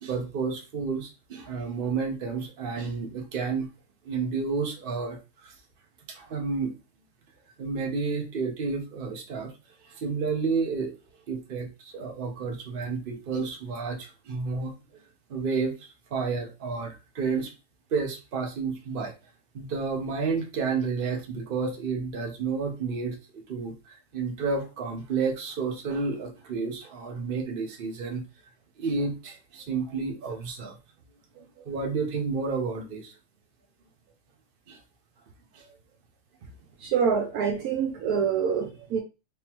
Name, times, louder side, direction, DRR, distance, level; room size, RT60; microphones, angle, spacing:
voice 1, 0.0-3.7 4.0-5.5 6.1-6.7 7.6-9.5 9.8-10.9 11.3-15.0 15.3-17.5 17.9-19.1 19.5-28.2 28.8-30.8 31.3-33.1 34.7-34.8 35.5-35.7, right 4 dB, 45° right, 0.8 m, -31 dB
voice 2, 36.8-39.0, right 6 dB, 70° right, 1.1 m, -26 dB
3.6 x 2.9 x 2.9 m
omnidirectional pair, 1.7 m